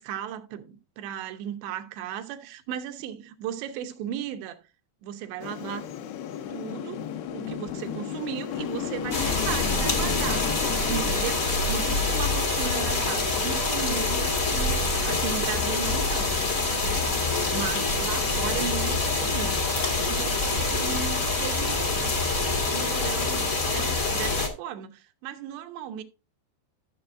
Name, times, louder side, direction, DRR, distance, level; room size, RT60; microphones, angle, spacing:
voice 1, 0.0-4.6 5.0-5.8 6.5-7.0 7.3-10.5 10.9-16.5 16.8-19.6 20.0-21.8 22.6-26.0, right 9 dB, 85° right, 3.2 m, -36 dB
sound 1, 5.4-12.0, left 9 dB, 75° left, 2.7 m, -34 dB
sound 2, 9.1-24.5, left 3 dB, 60° left, 0.8 m, -26 dB
13.5 x 6.9 x 2.6 m
omnidirectional pair, 4.9 m